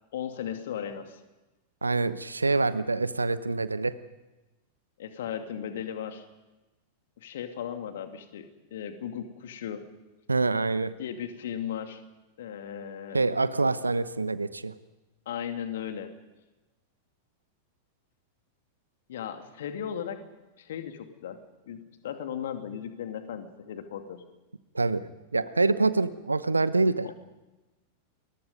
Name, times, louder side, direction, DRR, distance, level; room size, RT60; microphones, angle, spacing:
voice 1, 0.1-1.2 5.0-6.2 7.2-9.9 11.0-12.0 12.4-13.2 15.3-16.1 19.1-20.2 20.6-21.4 21.7-24.2 27.0-27.1, left 9 dB, 60° left, 7 dB, 2.3 m, -36 dB
voice 2, 1.8-4.0 10.3-10.9 13.1-14.7 24.7-25.0 25.3-27.1, right 3 dB, 80° right, 15 dB, 1.0 m, -26 dB
29.5 x 22.5 x 5.4 m, 1.1 s
figure-of-eight pair, 90°, 0 cm